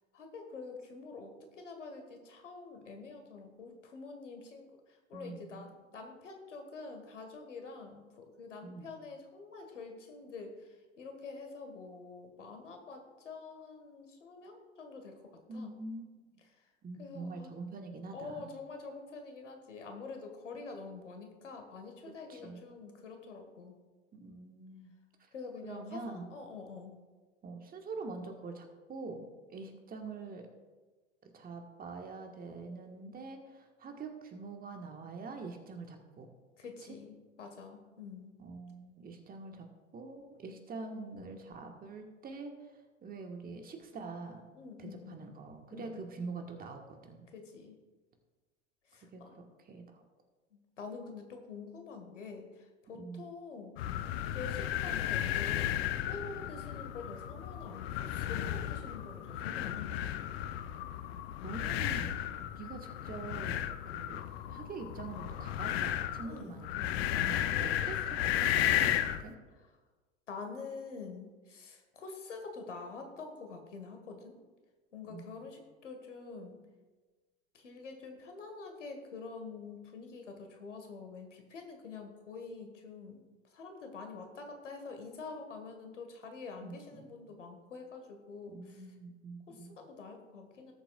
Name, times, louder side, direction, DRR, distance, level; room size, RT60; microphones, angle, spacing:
voice 1, 0.1-4.7 5.1-15.8 17.0-17.5 18.1-23.8 25.3-27.0 36.6-38.4 44.5-45.3 45.7-46.1 47.3-47.8 48.9-49.4 50.5-60.0 66.2-67.7 70.3-74.4 74.9-76.6 77.5-83.2 83.5-88.8 89.5-90.7, left 4 dB, 75° left, 5 dB, 1.7 m, -47 dB
voice 2, 5.1-5.7 8.6-8.9 15.5-16.4 16.8-18.5 22.3-22.7 24.1-24.9 25.6-26.3 27.4-30.5 31.2-36.3 36.9-37.0 38.4-42.7 43.0-44.5 44.8-47.2 49.1-50.0 52.9-53.2 61.4-62.2 62.5-64.2 64.5-69.4 75.1-75.5 86.6-87.0 88.5-89.7, right 3 dB, 25° right, 4 dB, 1.5 m, -45 dB
sound 1, 53.8-69.3, left 11 dB, 55° left, 0.7 m, -34 dB
18.5 x 7.7 x 2.4 m, 1.3 s
figure-of-eight pair, 85°, 37 cm